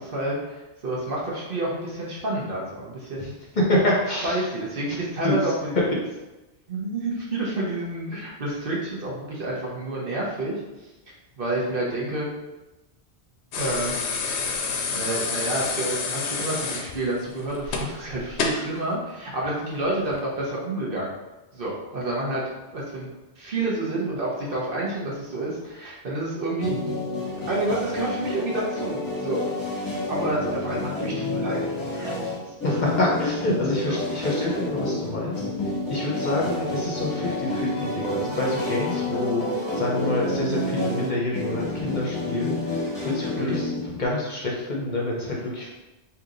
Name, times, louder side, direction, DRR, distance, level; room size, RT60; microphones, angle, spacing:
voice 1, 0.0-3.3 4.2-5.7 6.7-10.6 11.4-12.3 13.6-14.0 14.9-21.1 21.5-22.4 22.7-23.1 23.4-26.7 27.5-29.4 30.1-32.5 33.8-34.0 43.3-43.6, right 2 dB, 55° right, -4 dB, 1.1 m, -29 dB
voice 2, 3.6-4.4 5.2-5.4 32.6-35.5 35.9-39.4 39.7-45.7, left 1 dB, 45° left, -3 dB, 0.8 m, -27 dB
sound 1, 13.5-18.7 20.0-20.2, left 4 dB, 80° left, 0.8 m, -28 dB
sound 2, 26.6-44.0, left 1 dB, 20° left, 1.2 m, -29 dB
3.4 x 2.8 x 3.8 m, 1.1 s
omnidirectional pair, 1.1 m